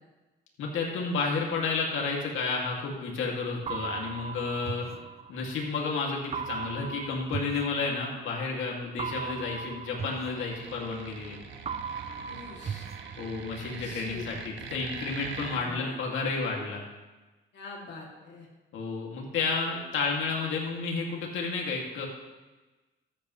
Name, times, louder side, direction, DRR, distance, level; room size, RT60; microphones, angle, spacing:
voice 1, 0.6-4.9 5.3-11.4 13.2-16.8 18.7-22.1, left 4 dB, 80° left, -1 dB, 2.5 m, -31 dB
sound 1, 3.7-5.7 6.3-8.4 9.0-11.3 11.6-13.7, right 6 dB, 30° right, 0.4 m, -38 dB
sound 2, 9.9-15.6, right 6 dB, 75° right, 1.3 m, -43 dB
voice 2, 12.2-12.9 13.7-14.3 15.4-16.0 17.5-18.5, left 4 dB, 60° left, -2 dB, 2.8 m, -45 dB
13.5 x 8.9 x 3.3 m, 1.2 s
cardioid pair, 90°, 20 cm